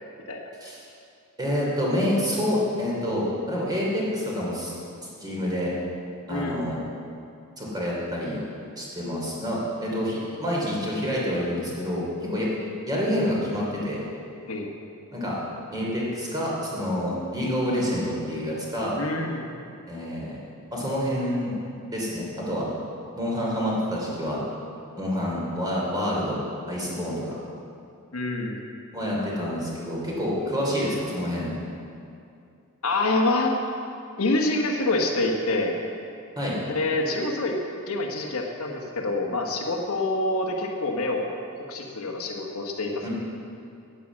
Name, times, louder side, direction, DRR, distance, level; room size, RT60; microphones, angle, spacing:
voice 1, 1.4-4.7 5.2-5.7 6.3-6.8 7.6-8.4 8.8-12.5 12.9-14.0 15.1-15.4 15.7-19.0 19.9-20.4 20.7-21.6 21.9-22.7 23.2-24.4 25.0-26.4 26.7-27.3 28.9-31.5 36.4-36.6 43.0-43.1, equal, 20° right, -5 dB, 2.9 m, -27 dB
voice 2, 6.3-6.7 14.5-14.7 19.0-19.5 28.1-28.6 32.8-33.5 34.2-35.8 36.7-37.6 37.9-41.3 41.7-43.1, left 2 dB, 70° left, 1 dB, 1.3 m, -26 dB
9.8 x 9.2 x 7.3 m, 2.5 s
head